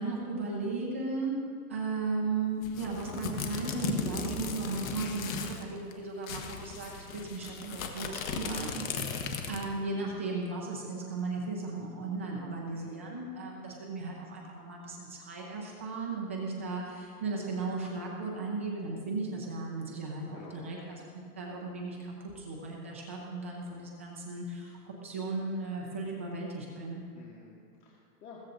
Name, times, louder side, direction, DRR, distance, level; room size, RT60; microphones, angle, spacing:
voice 1, 0.0-1.4 1.7-8.8 9.5-21.0 21.4-27.0, right 3 dB, 10° right, -3 dB, 0.3 m, -36 dB
sound 1, 2.6-5.6 5.9-6.0 6.2-9.8, left 6 dB, 60° left, 1.5 m, -37 dB
voice 2, 8.9-9.3 12.7-13.2 20.3-21.1 27.1-28.4, left 4 dB, 80° left, -4 dB, 2.4 m, -51 dB
15.5 x 14.5 x 3.9 m, 2.2 s
hypercardioid pair, 160°, 47 cm